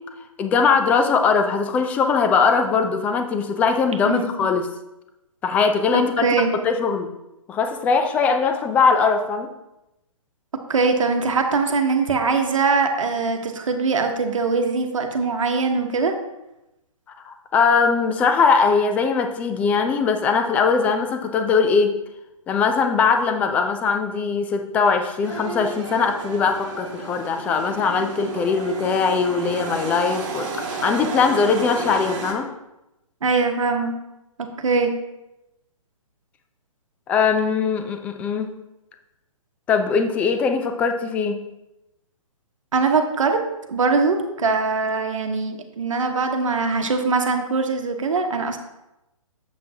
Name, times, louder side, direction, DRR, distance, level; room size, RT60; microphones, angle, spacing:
voice 1, 0.4-4.7 5.4-6.3 6.5-7.1 7.5-9.5 17.2-21.9 22.5-32.5 37.1-38.5 39.7-41.4, left 5 dB, 10° left, 6 dB, 0.3 m, -20 dB
voice 2, 4.0-4.5 5.9-6.6 10.7-16.1 33.2-34.0 34.4-34.9 42.7-43.4 43.7-48.6, right 4 dB, 65° right, 4 dB, 1.1 m, -22 dB
sound 1, 25.2-32.3, right 4 dB, 35° right, 1.4 m, -32 dB
7.4 x 7.3 x 2.8 m, 0.93 s
figure-of-eight pair, 130°, 18 cm